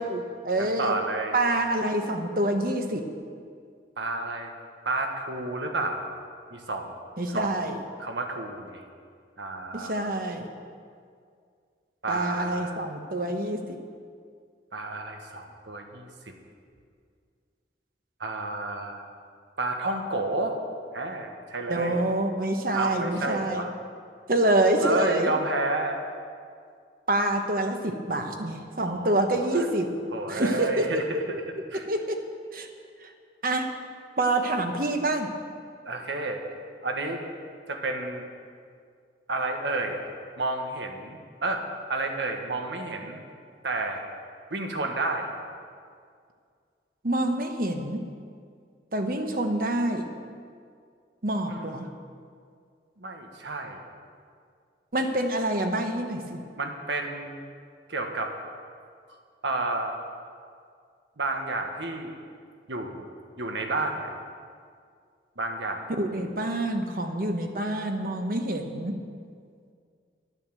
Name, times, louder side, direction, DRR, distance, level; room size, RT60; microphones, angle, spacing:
voice 1, 0.0-1.0 1.3-3.0 7.2-7.8 9.7-10.5 12.1-13.8 21.7-23.6 24.3-25.3 27.1-29.9 30.3-31.0 31.9-32.2 32.5-32.7 33.0-33.1 33.4-33.7 34.2-35.3 47.0-48.0 48.9-50.1 51.2-51.9 54.9-56.4 65.9-69.0, right 1 dB, 50° right, 5 dB, 1.1 m, -26 dB
voice 2, 0.6-1.4 4.0-4.5 4.8-6.0 6.5-6.9 7.3-7.6 8.0-8.8 9.4-10.0 12.0-12.8 14.7-16.1 18.2-19.0 19.6-20.6 20.9-22.1 22.7-23.7 24.8-26.0 28.8-29.7 30.1-31.4 31.7-31.9 35.8-36.4 36.8-37.2 37.7-38.3 39.3-40.0 40.4-41.6 41.9-43.2 43.6-44.0 44.5-45.3 51.5-51.8 53.0-53.8 56.6-57.4 57.9-58.3 59.4-60.0 61.2-62.1 62.7-63.0 63.4-64.1 65.4-65.9, right 2 dB, 85° right, 4 dB, 1.5 m, -30 dB
11.0 x 9.6 x 7.6 m, 2.2 s
head